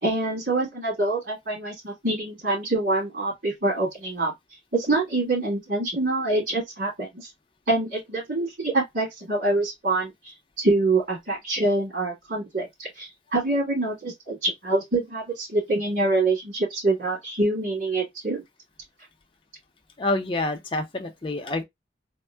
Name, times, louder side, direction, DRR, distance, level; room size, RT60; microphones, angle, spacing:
voice 1, 0.0-4.3 4.7-7.3 7.7-10.1 10.6-18.4, right 2 dB, 60° right, 2.2 m, -25 dB
voice 2, 20.0-21.6, left 2 dB, 25° left, 0.6 m, -27 dB
3.6 x 2.1 x 3.2 m
head